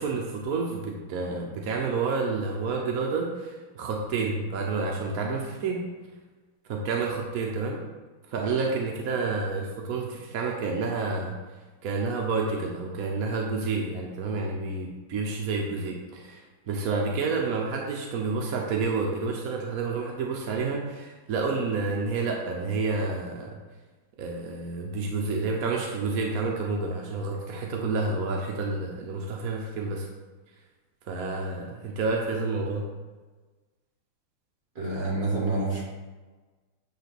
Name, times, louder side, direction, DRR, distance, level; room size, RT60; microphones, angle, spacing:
voice 1, 0.0-5.9 6.7-7.8 8.3-11.4 11.8-23.6 24.2-30.1 31.1-32.9, right 4 dB, 65° right, 0 dB, 0.9 m, -29 dB
voice 2, 34.8-35.8, right 2 dB, 40° right, -4 dB, 2.5 m, -27 dB
9.0 x 3.3 x 5.9 m, 1.3 s
omnidirectional pair, 2.3 m